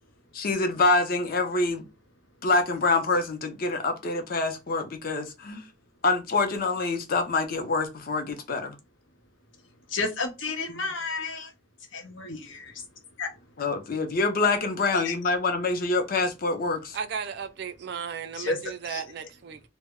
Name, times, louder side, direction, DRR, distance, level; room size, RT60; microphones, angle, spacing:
voice 1, 0.3-1.8 2.4-5.6 6.0-8.8 10.7-10.9 13.6-17.0, left 3 dB, 50° left, 0.5 m, -26 dB
voice 2, 9.9-11.5 11.9-12.4 13.2-13.3 14.9-15.1 18.4-18.6 18.9-19.0, left 3 dB, 90° left, 0.7 m, -31 dB
voice 3, 16.9-19.6, right 7 dB, 60° right, 0.3 m, -35 dB
2.0 x 2.0 x 3.5 m
head